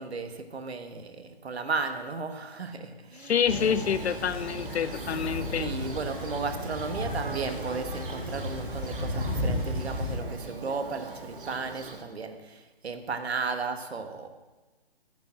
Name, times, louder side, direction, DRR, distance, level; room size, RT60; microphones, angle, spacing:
voice 1, 0.0-3.4 5.6-14.3, right 4 dB, 80° right, 7 dB, 1.3 m, -34 dB
voice 2, 3.2-5.7, left 8 dB, 85° left, 14 dB, 0.6 m, -27 dB
Rainy Storm Near a Water Source (Nature), 3.5-10.2, left 1 dB, 5° right, 2.8 m, -34 dB
Thunder, 3.5-12.0, right 3 dB, 55° right, 1.8 m, -41 dB
9.1 x 6.0 x 7.6 m, 1.2 s
hypercardioid pair, 155°, 31 cm